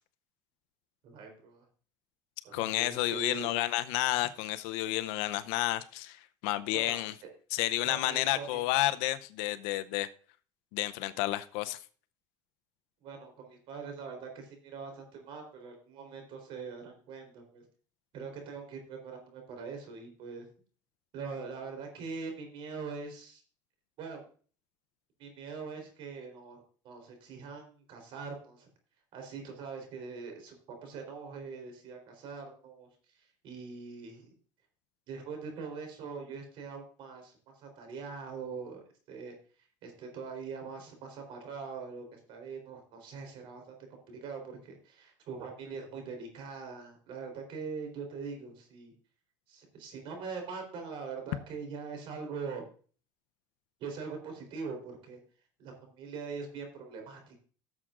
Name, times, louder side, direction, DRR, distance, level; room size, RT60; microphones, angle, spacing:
voice 1, 1.0-1.6 2.4-3.5 6.7-7.0 7.8-8.6 13.0-17.6 18.1-20.5 21.1-23.4 24.0-24.2 25.2-28.7 29.1-32.9 33.2-34.3 35.1-39.3 39.8-43.7 44.1-48.9 49.5-52.6 53.8-55.2 55.6-57.4, right 5 dB, 60° right, 4 dB, 3.7 m, -42 dB
voice 2, 2.5-7.1 7.5-10.1 10.7-11.8, left 16 dB, 75° left, 13 dB, 0.6 m, -31 dB
15.5 x 7.3 x 2.5 m, 0.41 s
supercardioid pair, 110°, 10 cm